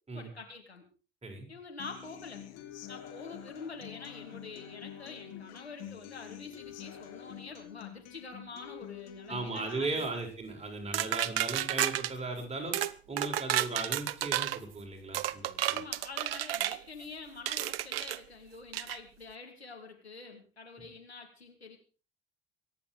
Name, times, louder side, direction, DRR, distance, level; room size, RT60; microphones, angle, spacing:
voice 1, 0.1-0.8 1.5-2.4 2.9-10.2 15.7-21.8, left 4 dB, 85° left, 2 dB, 2.7 m, -46 dB
Human voice / Acoustic guitar, 1.8-9.8, left 11 dB, 55° left, 3.3 m, -47 dB
voice 2, 9.3-12.8 13.1-15.8, right 3 dB, 20° right, 2 dB, 7.5 m, -37 dB
sound 1, 10.9-12.1 12.7-12.9 13.2-14.6 15.1-16.8 17.5-18.2 18.7-19.0, right 13 dB, 70° right, 0.8 m, -31 dB
23.5 x 10.5 x 5.0 m, 0.38 s
figure-of-eight pair, 60°, 31 cm